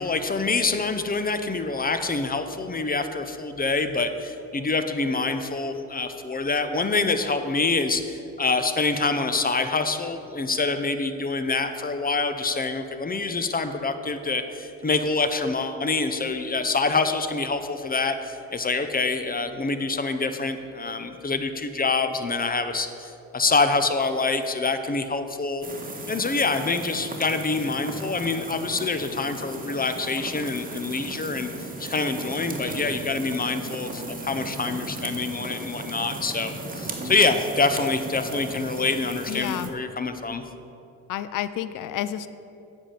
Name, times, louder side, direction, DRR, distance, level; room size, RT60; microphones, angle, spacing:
voice 1, 0.0-25.6 26.1-40.4, left 3 dB, 20° left, 9 dB, 0.8 m, -26 dB
sound 1, 25.6-39.7, right 2 dB, 20° right, 1.4 m, -36 dB
voice 2, 39.3-39.7 41.1-42.3, left 12 dB, 50° left, 14 dB, 0.5 m, -30 dB
8.2 x 5.5 x 7.4 m, 2.8 s
hypercardioid pair, 55°, 40 cm